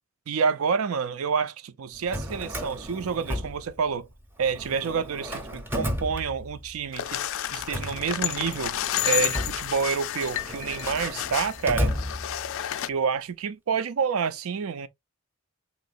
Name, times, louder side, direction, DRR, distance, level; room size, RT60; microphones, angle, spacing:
voice 1, 0.3-4.1 4.4-7.2 7.5-8.7 9.0-11.9 12.9-14.9, right 6 dB, 75° right, 0.5 m, -28 dB
Drawer open or close, 1.9-4.1 4.4-6.8 7.4-12.7, equal, 10° right, 0.7 m, -34 dB
sound 1, 6.9-12.9, left 13 dB, 65° left, 0.3 m, -31 dB
3.8 x 3.0 x 2.4 m
head